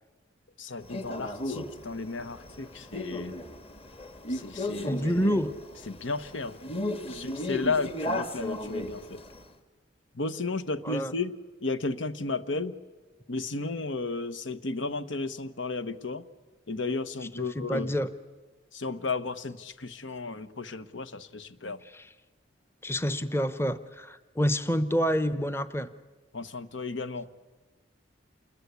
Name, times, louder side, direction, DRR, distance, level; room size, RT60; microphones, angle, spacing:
voice 1, 0.6-3.4 4.3-5.0 5.9-6.6 7.1-9.2 10.1-11.3 11.6-12.8 13.3-16.2 16.7-17.9 18.7-21.8 26.3-27.3, left 3 dB, 85° left, 12 dB, 1.2 m, -33 dB
Male speech man speaking, 0.9-9.4, left 1 dB, 30° left, 1.5 m, -35 dB
voice 2, 4.9-5.5 10.8-11.1 17.4-18.1 21.9-22.0 22.8-25.9, equal, 15° left, 13 dB, 0.8 m, -28 dB
28.0 x 21.5 x 8.3 m, 1.3 s
head